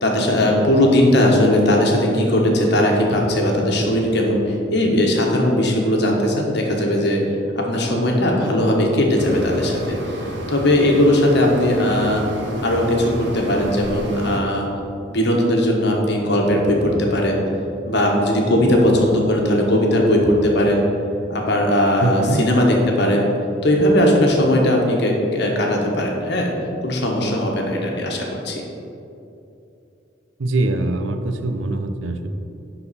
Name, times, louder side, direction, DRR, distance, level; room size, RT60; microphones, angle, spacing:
voice 1, 0.0-4.4 4.7-7.2 7.5-10.0 10.5-12.2 12.6-14.7 15.1-17.4 17.9-20.9 21.3-23.3 23.6-26.5 26.8-28.6, left 1 dB, 60° left, 0 dB, 1.2 m, -18 dB
sound 1, 9.2-14.4, right 1 dB, 65° right, 0.9 m, -30 dB
voice 2, 22.0-22.4 30.4-32.3, right 2 dB, 85° right, 7 dB, 0.6 m, -22 dB
11.0 x 4.0 x 4.2 m, 2.7 s
head